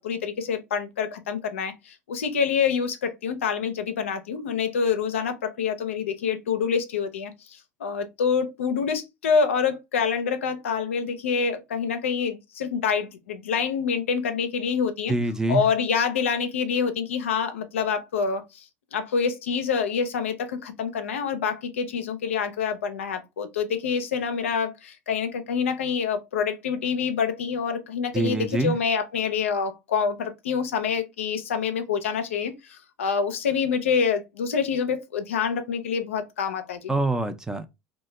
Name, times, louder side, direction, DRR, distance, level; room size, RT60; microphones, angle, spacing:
voice 1, 0.0-7.3 7.8-15.1 15.5-18.4 18.9-36.9, left 6 dB, 85° left, 0.4 m, -26 dB
voice 2, 15.1-15.6 28.1-28.7 36.9-37.7, right 2 dB, 10° right, 0.4 m, -25 dB
2.1 x 2.0 x 3.1 m
hypercardioid pair, 85°, 7 cm